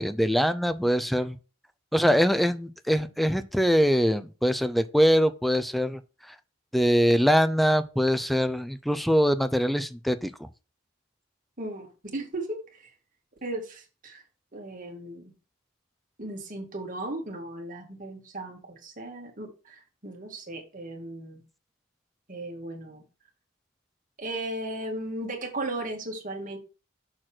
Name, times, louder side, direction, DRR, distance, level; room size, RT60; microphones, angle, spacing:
voice 1, 0.0-1.4 1.9-6.0 6.7-10.3, equal, ahead, 0.5 m, -23 dB
voice 2, 11.6-12.9 13.4-14.2 14.5-15.3 16.2-21.4 22.3-23.0 24.2-26.6, right 1 dB, 45° right, 2.0 m, -36 dB
6.6 x 4.2 x 6.1 m
head